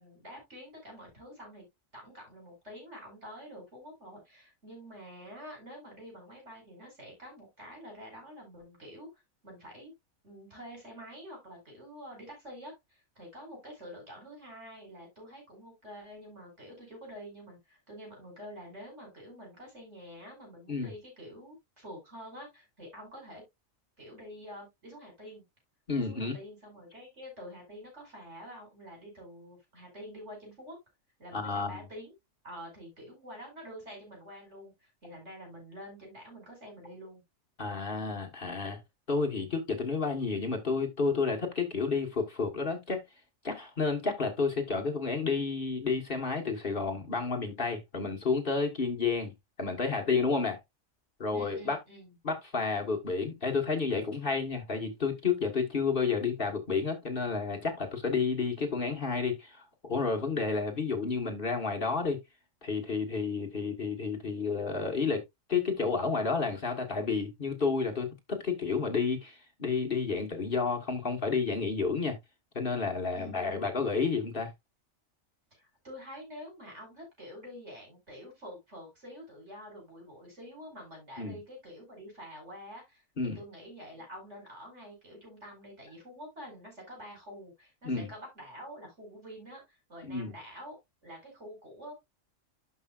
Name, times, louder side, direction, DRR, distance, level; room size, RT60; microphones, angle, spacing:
voice 1, 0.0-1.6 1.9-9.9 10.2-23.4 24.0-25.4 26.1-30.8 31.2-32.2 32.4-37.2 51.3-52.1 73.1-73.7 75.5-91.9, equal, 55° right, 5.4 m, -47 dB
voice 2, 25.9-26.4 31.3-31.8 37.6-38.8 39.1-43.0 43.4-49.3 49.6-50.6 51.2-51.8 52.2-62.2 62.6-65.2 65.5-72.2 72.5-74.5 81.2-81.4 83.2-83.4 87.8-88.1 90.1-90.3, left 4 dB, 40° left, 1.7 m, -31 dB
12.0 x 5.5 x 2.5 m
omnidirectional pair, 1.4 m